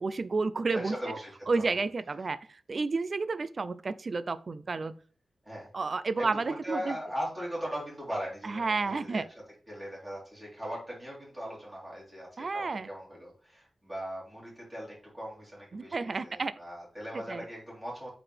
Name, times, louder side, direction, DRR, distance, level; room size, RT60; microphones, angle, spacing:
voice 1, 0.0-1.0 1.5-2.4 2.7-4.9 5.7-7.0 8.4-9.3 12.4-12.9 15.7-16.5 17.3-17.4, right 4 dB, 45° right, 14 dB, 0.4 m, -31 dB
voice 2, 0.7-1.8 5.4-5.7 6.2-9.2 9.7-18.1, equal, 10° right, -5 dB, 3.4 m, -39 dB
8.6 x 4.0 x 3.3 m, 0.42 s
wide cardioid pair, 125°, 0 cm